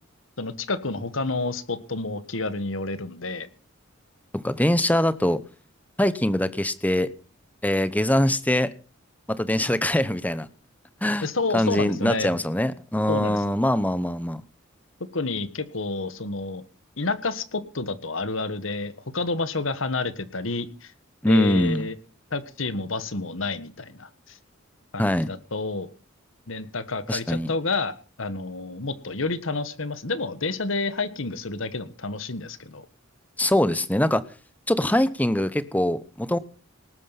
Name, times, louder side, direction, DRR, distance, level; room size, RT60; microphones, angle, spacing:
voice 1, 0.4-3.5 11.2-12.4 13.1-13.4 15.1-16.6 17.0-20.9 21.2-21.9 22.3-24.4 24.9-25.9 26.5-32.9, left 3 dB, 75° left, 14 dB, 1.5 m, -29 dB
voice 2, 4.3-5.4 6.0-7.1 7.6-8.7 9.3-10.5 11.0-11.3 11.5-14.4 21.2-21.9 25.0-25.3 27.1-27.5 33.4-34.2 34.7-36.4, left 1 dB, 10° left, 15 dB, 0.9 m, -23 dB
19.0 x 9.0 x 5.9 m, 0.36 s
head